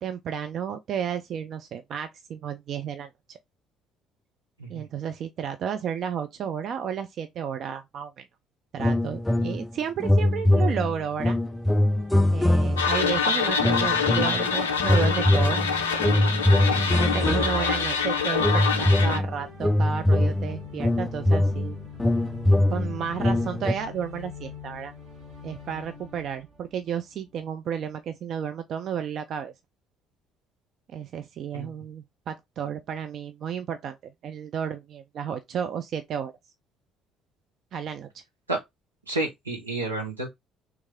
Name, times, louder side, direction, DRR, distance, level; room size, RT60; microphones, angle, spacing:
voice 1, 0.0-3.4 4.7-8.3 8.7-11.4 12.3-15.6 16.1-16.3 17.0-21.8 22.7-24.9 25.4-29.5 30.9-36.3 37.7-38.2, right 8 dB, 50° right, 0.5 m, -32 dB
sound 1, 8.8-9.7 10.0-13.1 13.6-14.5 14.8-17.9 18.4-23.7, left 1 dB, 10° left, 0.3 m, -23 dB
sound 2, 11.4-27.5, left 3 dB, 70° right, 1.9 m, -44 dB
sound 3, 12.8-19.2, left 6 dB, 75° left, 0.4 m, -25 dB
voice 2, 16.7-17.0 31.5-31.7 38.5-38.6 39.1-40.3, right 2 dB, 85° right, 0.9 m, -31 dB
3.5 x 3.1 x 3.5 m
figure-of-eight pair, 50°, 0 cm